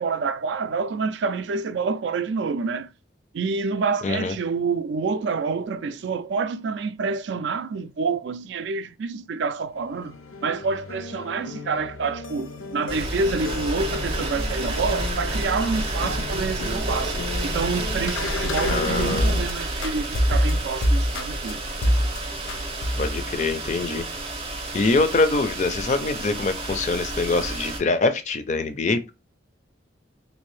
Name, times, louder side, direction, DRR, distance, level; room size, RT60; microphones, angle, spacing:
voice 1, 0.0-2.9 3.3-10.2 10.4-17.2 17.4-22.0, right 4 dB, 65° right, 0.3 m, -27 dB
voice 2, 4.0-4.3 18.7-19.4 23.0-24.0 24.7-29.2, left 3 dB, 35° left, 0.4 m, -24 dB
sound 1, 9.8-19.5 19.8-21.5 21.8-22.2 22.5-23.2, left 1 dB, 90° left, 0.5 m, -29 dB
sound 2, 12.9-27.8, right 2 dB, 30° right, 0.6 m, -30 dB
3.3 x 2.6 x 3.2 m
head